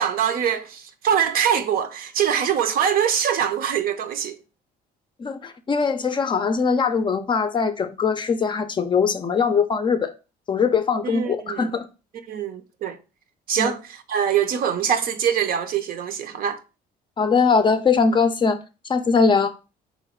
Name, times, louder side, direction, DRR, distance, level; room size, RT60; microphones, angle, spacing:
voice 1, 0.0-4.4 11.0-11.7 12.3-13.0 13.5-16.6, right 8 dB, 60° right, 0.6 m, -23 dB
voice 2, 5.2-10.1 10.5-11.9 13.6-13.7 17.2-18.6 18.9-19.5, left 5 dB, 30° left, 0.5 m, -21 dB
3.8 x 3.0 x 4.3 m
cardioid pair, 110°, 17 cm